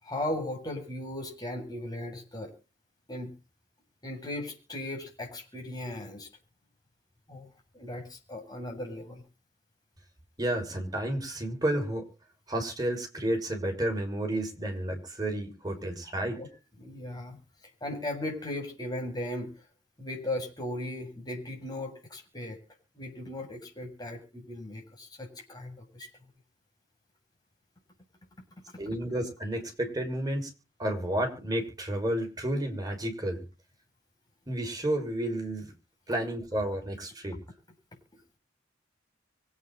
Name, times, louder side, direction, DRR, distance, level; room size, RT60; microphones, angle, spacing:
voice 1, 0.0-2.5 3.1-3.3 4.0-6.3 7.3-7.5 7.7-9.2 16.3-16.5 16.8-17.4 17.8-19.5 20.0-22.6 23.0-26.1, left 1 dB, 20° left, 2 dB, 7.9 m, -37 dB
voice 2, 10.4-12.1 12.5-16.4 28.8-30.5 30.8-33.4 34.5-35.7 36.1-37.4, right 1 dB, 20° right, 3 dB, 6.2 m, -31 dB
25.0 x 9.4 x 4.2 m, 0.34 s
head